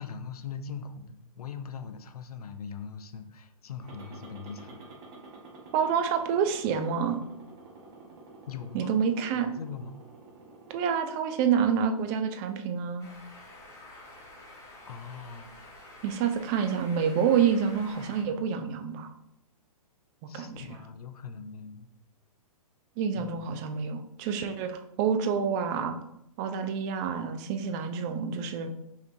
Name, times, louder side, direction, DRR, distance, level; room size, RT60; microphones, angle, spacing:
voice 1, 0.0-4.9 8.5-10.0 14.9-15.6 20.3-21.9 23.1-23.4, left 6 dB, 80° left, 9 dB, 0.6 m, -41 dB
sound 1, 3.8-10.8, right 3 dB, 45° right, 1.1 m, -49 dB
voice 2, 5.7-7.2 8.7-9.5 10.7-13.1 16.0-19.1 20.3-20.8 23.0-25.9 26.4-28.7, right 7 dB, 25° right, 7 dB, 0.4 m, -28 dB
sound 2, 13.0-18.2, left 2 dB, 15° left, 1.4 m, -49 dB
5.5 x 3.1 x 2.6 m, 0.81 s
hypercardioid pair, 135°, 19 cm